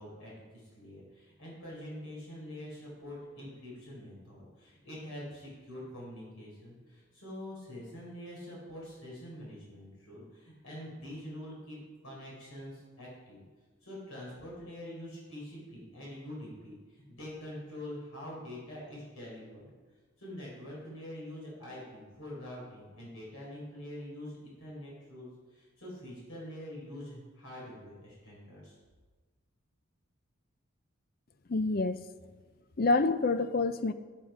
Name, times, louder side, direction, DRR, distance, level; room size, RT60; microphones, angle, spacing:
voice 1, 0.0-13.4 13.8-19.7 20.2-28.8, left 1 dB, 90° left, -4 dB, 4.1 m, -45 dB
voice 2, 31.5-32.0 32.8-33.9, left 3 dB, 45° left, 12 dB, 0.5 m, -27 dB
10.5 x 9.4 x 5.0 m, 1.4 s
head